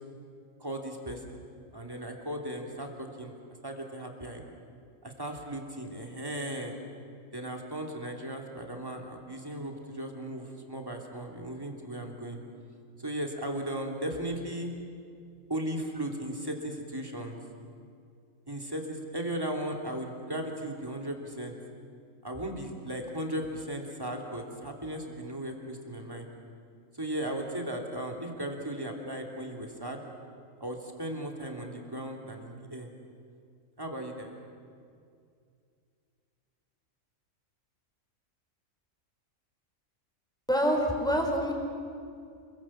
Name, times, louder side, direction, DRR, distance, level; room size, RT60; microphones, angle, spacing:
voice 1, 0.6-1.4 1.7-3.4 3.6-4.4 5.0-6.7 7.3-12.4 13.0-14.7 15.5-17.4 18.5-21.5 22.2-26.3 26.9-30.0 30.6-32.9 33.8-34.4, right 1 dB, 15° right, 2 dB, 3.0 m, -36 dB
voice 2, 40.5-41.5, equal, 5° left, 1 dB, 4.1 m, -26 dB
28.5 x 23.0 x 7.5 m, 2.4 s
omnidirectional pair, 1.4 m